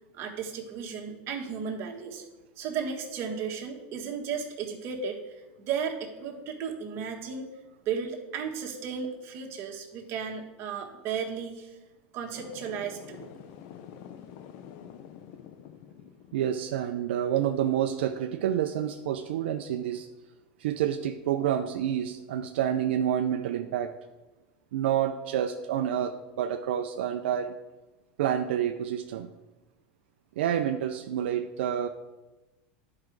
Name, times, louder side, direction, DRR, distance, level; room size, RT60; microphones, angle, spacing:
voice 1, 0.1-2.2 2.6-7.5 7.8-11.8 12.1-13.3, right 6 dB, 45° right, 1 dB, 1.5 m, -34 dB
sound 1, 12.3-16.6, left 9 dB, 60° left, 0.6 m, -47 dB
voice 2, 16.3-20.1 20.6-23.9 24.7-27.5 28.2-29.3 30.4-31.9, right 10 dB, 85° right, 6 dB, 0.5 m, -28 dB
10.5 x 4.9 x 4.7 m, 1.1 s
supercardioid pair, 125°, 6 cm